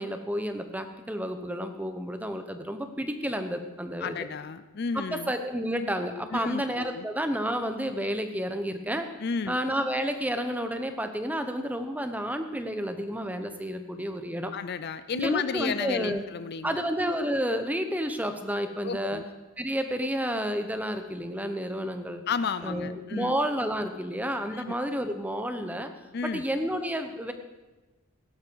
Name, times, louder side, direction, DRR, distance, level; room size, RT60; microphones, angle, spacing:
voice 1, 0.0-4.2 4.9-9.1 9.5-14.5 15.1-16.2 16.6-19.2 19.6-22.2 22.6-25.9 26.3-27.3, equal, 5° right, 7 dB, 0.9 m, -30 dB
voice 2, 4.0-5.3 6.3-7.1 9.2-9.6 14.5-16.9 18.8-19.2 22.3-23.3 24.5-24.8 26.1-26.4, left 5 dB, 45° left, 13 dB, 0.4 m, -32 dB
17.0 x 12.0 x 4.7 m, 1.1 s
head